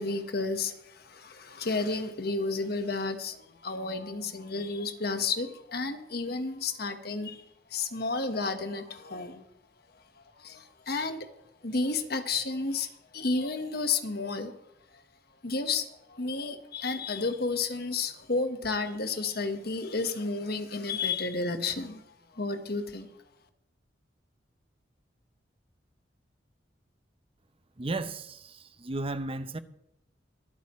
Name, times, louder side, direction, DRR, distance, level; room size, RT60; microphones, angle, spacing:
voice 1, 0.0-7.4 7.7-9.4 10.4-11.3 11.6-14.5 14.9-15.0 15.4-22.0 22.3-23.1, left 3 dB, 55° left, 1.4 m, -32 dB
voice 2, 27.8-29.6, right 2 dB, 30° right, 0.7 m, -34 dB
24.5 x 9.1 x 3.2 m
head